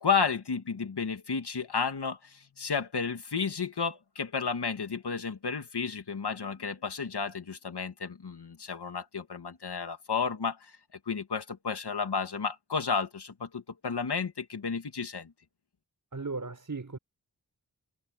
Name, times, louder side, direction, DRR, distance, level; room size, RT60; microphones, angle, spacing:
voice 1, 0.0-10.7 11.1-15.3, left 5 dB, 80° left, 2.4 m, -32 dB
voice 2, 16.1-17.0, right 4 dB, 50° right, 4.6 m, -36 dB
wide cardioid pair, 55°, 39 cm